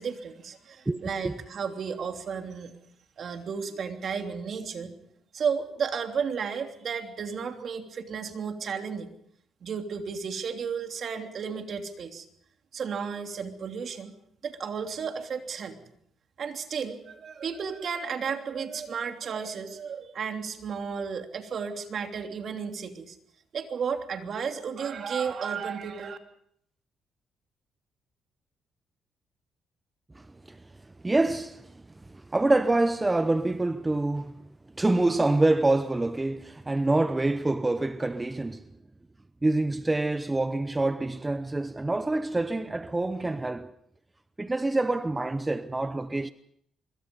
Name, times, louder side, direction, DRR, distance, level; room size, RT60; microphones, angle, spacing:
voice 1, 0.0-2.8 3.2-4.9 5.3-9.1 9.6-12.2 12.7-14.1 14.4-15.8 16.4-23.2 23.5-26.2, right 6 dB, 55° right, 3.1 m, -33 dB
voice 2, 0.9-1.3 30.2-30.6 31.0-31.7 32.1-34.3 34.8-38.6 39.4-43.7 44.4-46.3, right 2 dB, 15° right, 0.8 m, -26 dB
25.5 x 23.0 x 5.4 m
cardioid pair, 90°, 0 cm